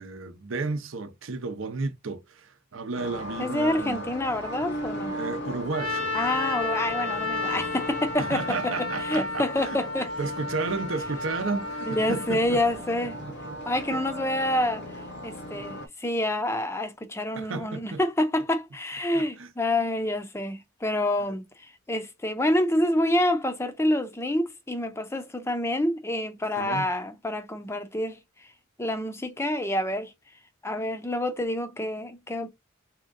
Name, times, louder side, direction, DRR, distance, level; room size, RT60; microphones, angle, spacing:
voice 1, 0.0-4.1 5.1-6.2 7.5-7.7 8.2-9.8 10.2-12.6 13.2-13.6 13.9-14.0 17.3-18.0 19.1-19.5 26.6-26.9, right 3 dB, 65° right, 0.7 m, -33 dB
sound 1, 2.9-15.9, equal, 55° left, 0.8 m, -38 dB
voice 2, 3.4-5.1 6.1-10.1 11.9-13.2 13.7-14.9 15.2-28.5 28.8-30.1 30.6-32.5, left 1 dB, 10° left, 0.5 m, -27 dB
Trumpet, 5.7-12.3, left 3 dB, 85° left, 1.2 m, -32 dB
3.5 x 2.9 x 2.5 m
head